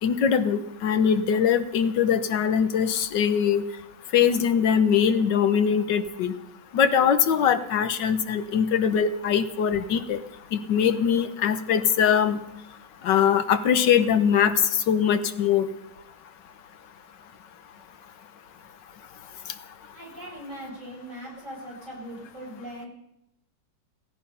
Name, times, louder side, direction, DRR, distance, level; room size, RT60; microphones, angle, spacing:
voice 1, 0.0-3.6 4.1-6.3 6.7-10.2 10.5-12.4 13.0-14.5 14.9-15.7, left 8 dB, 75° left, 11 dB, 1.7 m, -22 dB
voice 2, 19.9-22.9, equal, 40° right, -3 dB, 6.9 m, -40 dB
16.5 x 16.0 x 5.6 m, 0.86 s
omnidirectional pair, 1.9 m